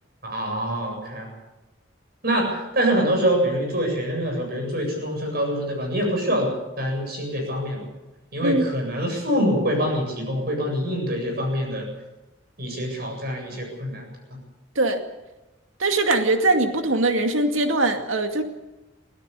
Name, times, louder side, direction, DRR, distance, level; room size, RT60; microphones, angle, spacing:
voice 1, 0.2-1.3 2.2-6.5 6.8-7.8 8.3-11.9 12.6-14.4, equal, 50° right, 2 dB, 8.0 m, -25 dB
voice 2, 15.8-18.4, right 2 dB, 90° right, 5 dB, 2.3 m, -21 dB
24.0 x 16.5 x 7.0 m, 1.1 s
head